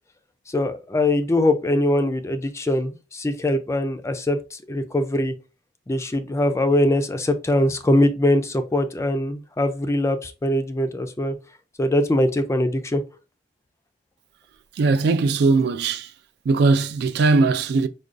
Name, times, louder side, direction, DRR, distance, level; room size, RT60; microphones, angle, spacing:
voice 1, 0.5-5.3 5.9-11.4 11.8-13.0, left 1 dB, 15° left, 0.4 m, -22 dB
voice 2, 14.8-16.1 16.5-17.9, right 3 dB, 65° right, 0.3 m, -19 dB
4.9 x 2.3 x 2.5 m
head